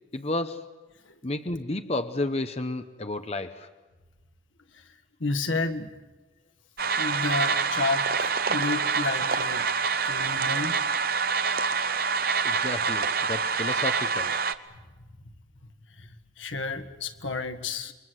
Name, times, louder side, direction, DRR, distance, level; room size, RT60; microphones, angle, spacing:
voice 1, 0.1-0.7 1.2-3.7 12.4-14.4, left 2 dB, 35° left, 8 dB, 0.9 m, -31 dB
voice 2, 5.2-5.9 7.0-9.7 10.0-10.8 16.0-16.1 16.4-17.9, left 3 dB, 80° left, 8 dB, 1.7 m, -31 dB
sound 1, 6.8-14.5, right 5 dB, 50° right, 0.9 m, -26 dB
28.5 x 23.0 x 8.0 m, 1.2 s
head